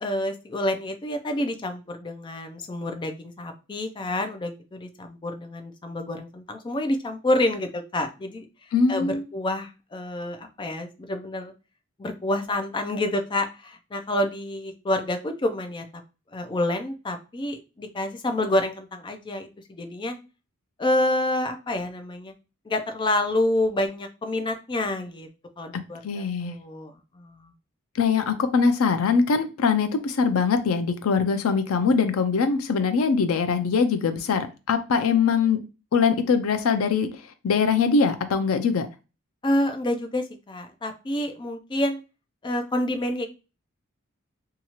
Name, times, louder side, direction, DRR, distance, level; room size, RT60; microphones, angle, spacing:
voice 1, 0.0-8.5 8.9-11.5 12.0-15.9 16.3-20.2 20.8-22.3 22.7-25.3 25.6-27.5 34.9-35.1 39.4-42.0 42.4-43.3, left 1 dB, 20° left, 6 dB, 0.4 m, -28 dB
voice 2, 8.7-9.2 25.7-26.5 28.0-35.6 35.9-37.1 37.4-38.9, left 5 dB, 85° left, 9 dB, 0.4 m, -22 dB
2.8 x 2.3 x 2.8 m, 0.31 s
head